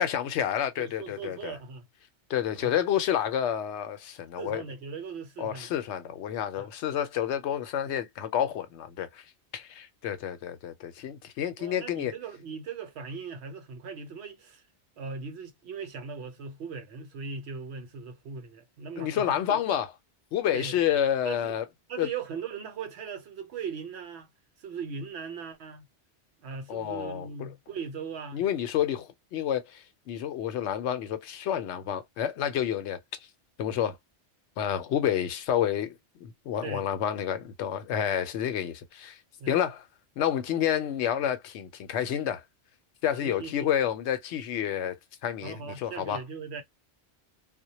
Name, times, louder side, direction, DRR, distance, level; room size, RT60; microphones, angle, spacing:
voice 1, 0.0-1.5 2.3-4.6 5.4-9.2 9.5-12.1 19.0-19.9 20.3-21.6 22.0-22.1 26.7-27.5 28.3-33.0 33.6-34.0 34.6-39.2 39.5-39.8 40.2-42.4 43.0-44.9 45.2-46.2, left 10 dB, 75° left, 0.8 m, -29 dB
voice 2, 0.8-1.8 2.5-2.8 4.4-5.7 6.6-6.7 11.6-14.6 15.0-19.6 20.5-20.8 21.2-21.6 21.9-24.3 24.6-25.8 26.4-28.4 36.6-36.9 39.4-39.5 43.2-43.7 45.4-46.6, right 5 dB, 70° right, 0.9 m, -39 dB
2.1 x 2.1 x 2.8 m
omnidirectional pair, 1.2 m